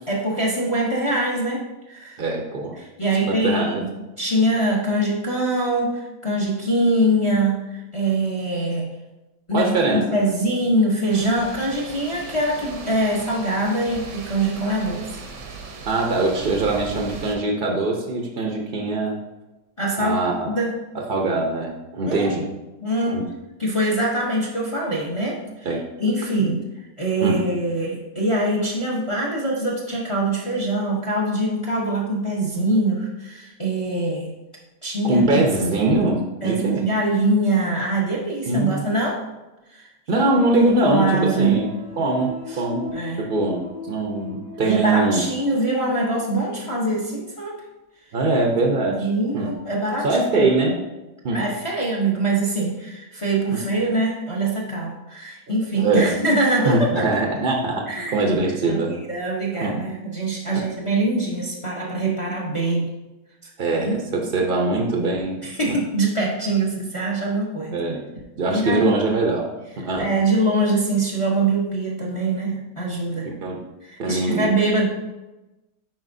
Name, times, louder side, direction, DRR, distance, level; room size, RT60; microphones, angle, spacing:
voice 1, 0.1-2.2 2.8-8.9 9.5-15.2 19.8-20.2 20.5-20.8 22.0-22.3 22.8-23.2 23.6-25.4 26.0-26.6 27.0-34.3 34.8-35.4 36.4-39.2 39.7-40.2 40.7-41.6 42.9-43.3 44.6-47.6 48.9-50.1 50.4-50.5 51.3-57.1 57.9-58.3 58.6-62.9 63.7-63.9 65.4-67.8 68.5-68.9 70.0-73.3 73.8-74.9, right 2 dB, 30° left, -2 dB, 0.6 m, -23 dB
voice 2, 2.2-2.8 3.3-3.8 9.5-10.1 15.8-19.2 20.0-20.5 20.9-22.5 23.1-23.3 25.6-25.9 26.4-26.5 27.2-27.5 35.0-36.8 38.5-38.8 40.1-41.7 42.0-45.2 48.1-49.1 49.3-49.5 50.0-50.8 51.2-51.5 53.5-53.6 55.5-56.1 56.6-59.0 59.5-59.8 60.5-60.6 63.6-65.8 67.7-69.5 69.8-70.1 73.3-73.7 74.0-74.5, right 2 dB, 50° right, 1 dB, 0.6 m, -22 dB
sound 1, 11.1-17.4, right 4 dB, 80° right, 1.5 m, -38 dB
sound 2, 40.2-46.4 46.8-46.9, left 3 dB, 60° left, 1.7 m, -38 dB
10.0 x 4.3 x 2.6 m, 1.0 s
omnidirectional pair, 1.8 m